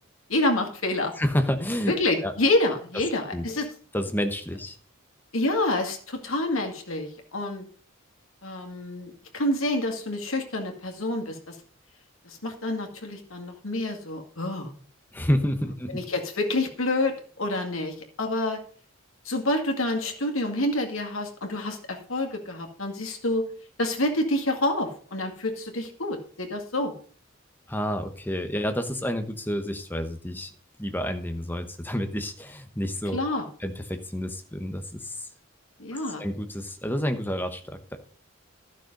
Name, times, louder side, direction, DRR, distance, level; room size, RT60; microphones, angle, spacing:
voice 1, 0.3-1.1 1.9-3.7 5.3-7.6 8.4-11.6 12.3-14.7 15.9-18.6 19.3-23.5 23.8-26.9 33.1-33.5 35.8-36.2, left 1 dB, 80° left, 4 dB, 2.1 m, -28 dB
voice 2, 1.2-1.9 2.2-2.3 3.3-3.4 3.9-4.8 15.1-16.0 27.7-30.5 30.8-33.2 33.6-35.3 36.2-38.0, equal, 10° left, 7 dB, 1.0 m, -29 dB
12.5 x 6.5 x 5.3 m, 0.43 s
head